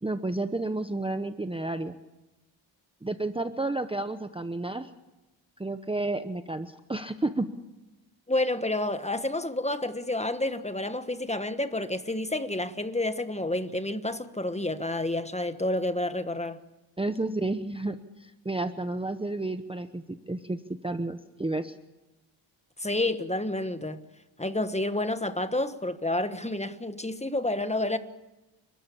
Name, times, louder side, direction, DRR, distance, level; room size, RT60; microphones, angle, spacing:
voice 1, 0.0-2.0 3.0-4.9 5.6-7.5 17.0-21.8, right 2 dB, 10° right, 0.9 m, -31 dB
voice 2, 8.3-16.6 22.8-24.0 24.4-28.0, left 1 dB, 15° left, 1.3 m, -29 dB
29.5 x 13.0 x 8.6 m
cardioid pair, 90°, 49 cm